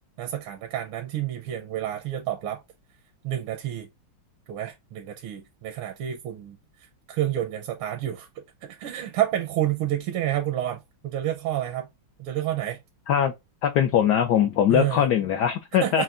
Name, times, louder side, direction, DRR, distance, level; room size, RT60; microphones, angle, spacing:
voice 1, 0.2-2.6 3.2-3.9 4.5-6.6 7.1-8.3 8.6-11.9 12.2-12.8 14.7-15.0 15.8-16.0, right 12 dB, 80° right, 1.5 m, -29 dB
voice 2, 13.6-16.0, left 9 dB, 75° left, 0.9 m, -21 dB
5.8 x 2.1 x 2.5 m
omnidirectional pair, 2.3 m